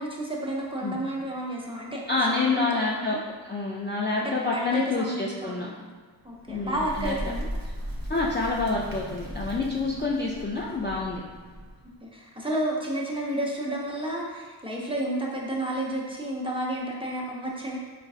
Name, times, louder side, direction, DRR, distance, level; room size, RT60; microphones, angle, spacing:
voice 1, 0.0-3.2 4.2-6.0 6.2-7.5 9.9-10.2 12.0-17.8, right 1 dB, 10° right, -4 dB, 0.7 m, -31 dB
voice 2, 2.1-3.2 3.5-5.7 6.5-7.1 8.1-11.2, left 3 dB, 25° left, -5 dB, 0.4 m, -27 dB
Bird, 6.3-12.0, equal, 50° right, 0.8 m, -37 dB
4.4 x 2.5 x 2.4 m, 1.5 s
cardioid pair, 40°, 45 cm